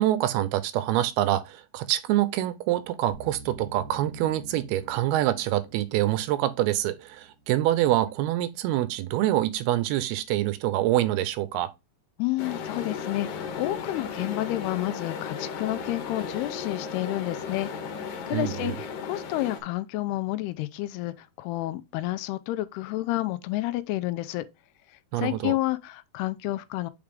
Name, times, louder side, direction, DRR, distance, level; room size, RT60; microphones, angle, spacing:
voice 1, 0.0-11.7 18.3-18.8 25.1-25.6, right 14 dB, 80° right, 2.5 m, -26 dB
sound 1, 3.1-8.2, right 1 dB, 35° left, 2.0 m, -48 dB
voice 2, 12.2-17.7 18.3-24.5 25.2-26.9, left 17 dB, 85° left, 2.6 m, -30 dB
sound 2, 12.4-19.6, left 6 dB, 65° left, 2.7 m, -35 dB
7.6 x 4.7 x 3.5 m
omnidirectional pair, 4.6 m